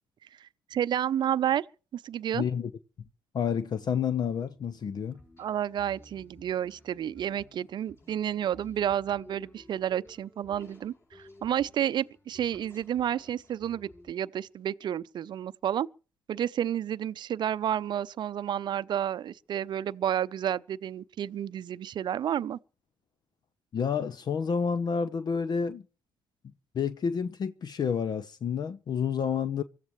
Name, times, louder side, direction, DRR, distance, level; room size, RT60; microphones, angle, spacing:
voice 1, 0.7-1.7 1.9-2.4 5.4-10.9 11.4-15.9 16.3-22.6, right 10 dB, 50° right, 0.6 m, -30 dB
voice 2, 2.3-2.7 3.3-5.2 23.7-25.8 26.7-29.6, left 6 dB, 45° left, 0.9 m, -29 dB
sound 1, 4.5-14.1, left 1 dB, 25° left, 5.2 m, -55 dB
24.5 x 14.0 x 3.2 m
hypercardioid pair, 55°, 10 cm